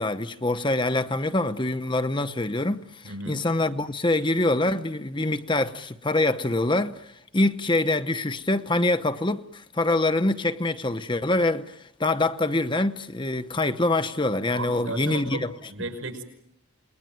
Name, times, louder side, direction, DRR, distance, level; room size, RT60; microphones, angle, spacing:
voice 1, 0.0-15.5, left 2 dB, 25° left, 0.9 m, -25 dB
voice 2, 3.0-3.4 14.5-15.4 15.7-16.2, right 2 dB, 75° right, 5.8 m, -34 dB
28.5 x 21.0 x 9.2 m
head